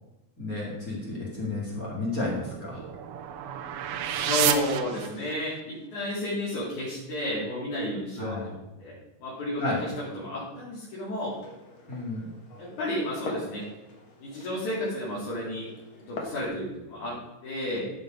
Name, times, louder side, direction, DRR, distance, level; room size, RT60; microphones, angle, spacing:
voice 1, 0.4-2.8 8.2-8.5 9.6-9.8 11.9-12.3, left 2 dB, 30° left, -4 dB, 2.5 m, -32 dB
sound 1, 2.2-5.6, right 9 dB, 75° right, 1.6 m, -30 dB
voice 2, 4.1-11.4 12.6-13.6 14.2-15.7 16.0-17.9, left 1 dB, 85° left, -8 dB, 4.2 m, -32 dB
Glass, 11.3-16.5, left 3 dB, 50° left, 2.1 m, -43 dB
13.5 x 5.3 x 5.1 m, 1.0 s
omnidirectional pair, 3.3 m